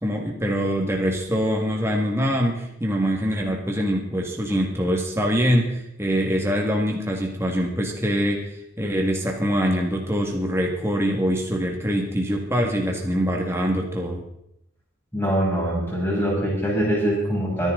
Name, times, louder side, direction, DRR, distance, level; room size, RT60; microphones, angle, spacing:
voice 1, 0.0-8.5 8.8-14.2, equal, 10° right, 0 dB, 1.9 m, -24 dB
voice 2, 15.1-17.7, equal, 10° left, -6 dB, 7.8 m, -23 dB
24.0 x 10.5 x 3.9 m, 0.78 s
head